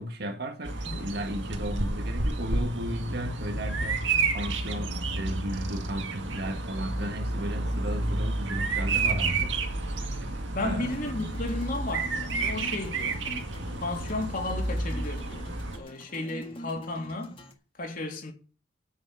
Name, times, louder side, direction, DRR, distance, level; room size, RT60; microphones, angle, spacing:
voice 1, 0.0-9.6 10.6-10.9, equal, 55° right, 1.9 m, -35 dB
Bird vocalization bird call bird song, 0.6-15.8, right 3 dB, 75° right, 2.0 m, -30 dB
voice 2, 10.5-13.2 13.8-15.5 15.8-17.4 17.8-18.3, left 2 dB, 45° left, 3.2 m, -34 dB
sound 1, 10.8-17.5, left 1 dB, 30° left, 1.8 m, -45 dB
8.8 x 7.7 x 8.9 m
head